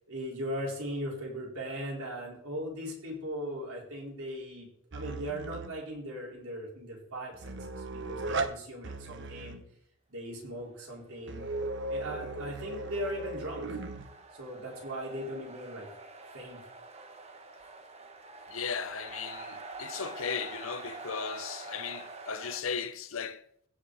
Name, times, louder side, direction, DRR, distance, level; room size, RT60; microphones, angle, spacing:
voice 1, 0.1-9.6 10.1-11.4 11.9-13.8 14.3-15.9 16.3-16.6, equal, 80° right, 4.6 m, -39 dB
sound 1, 4.9-5.8 7.3-8.5 8.8-9.6 11.3-14.1, right 3 dB, 55° right, 0.9 m, -37 dB
sound 2, 11.1-22.6, right 3 dB, 30° right, 1.2 m, -47 dB
voice 2, 18.5-23.4, left 6 dB, 65° left, 0.6 m, -36 dB
16.5 x 5.5 x 4.9 m
head